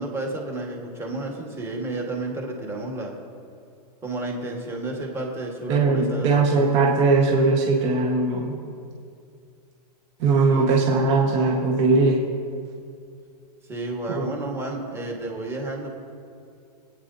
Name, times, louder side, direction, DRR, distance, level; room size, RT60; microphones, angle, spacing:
voice 1, 0.0-3.1 4.0-6.6 10.5-10.9 13.7-15.9, right 2 dB, 10° right, 0 dB, 1.5 m, -31 dB
voice 2, 5.7-8.5 10.2-12.2 14.1-14.3, right 3 dB, 45° right, -2 dB, 1.4 m, -20 dB
25.0 x 9.0 x 2.7 m, 2.4 s
supercardioid pair, 160°, 21 cm